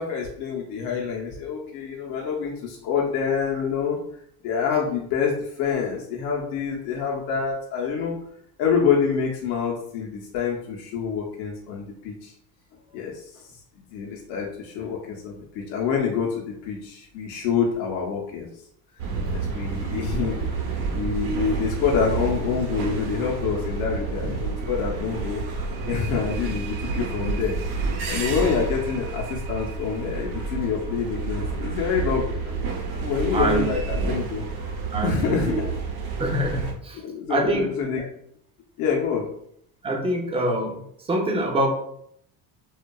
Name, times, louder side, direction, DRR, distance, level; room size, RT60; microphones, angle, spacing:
voice 1, 0.0-4.0 4.4-8.1 8.6-12.3 12.9-13.5 13.8-18.5 19.3-20.5 20.9-25.4 25.9-27.6 28.0-32.6 33.0-34.5 35.0-35.8 36.9-38.1 38.8-39.3, left 6 dB, 80° left, -2 dB, 0.6 m, -27 dB
sound 1, 19.0-36.7, right 4 dB, 80° right, 0.7 m, -29 dB
voice 2, 19.2-19.7 24.2-24.3 33.3-33.7 34.9-35.6 36.2-37.0 37.3-37.7 39.8-40.8 41.1-41.7, right 1 dB, 15° right, 1 dB, 0.3 m, -25 dB
2.5 x 2.2 x 2.2 m, 0.70 s
supercardioid pair, 105°, 45 cm